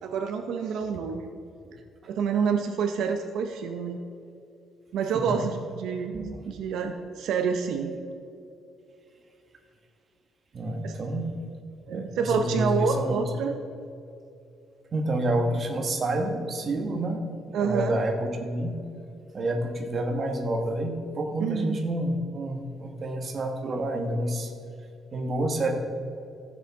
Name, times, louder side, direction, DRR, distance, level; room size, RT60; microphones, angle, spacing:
voice 1, 0.0-1.3 2.1-4.0 4.9-6.2 6.5-7.9 10.8-11.0 11.9-13.5 17.5-18.0 21.4-21.8, right 6 dB, 75° right, 6 dB, 0.7 m, -28 dB
voice 2, 10.5-11.3 11.9-13.3 14.9-17.3 17.6-18.8 19.3-24.5 25.1-25.7, right 1 dB, 35° right, 3 dB, 1.3 m, -28 dB
15.0 x 7.3 x 3.6 m, 2.6 s
cardioid pair, 155°, 0 cm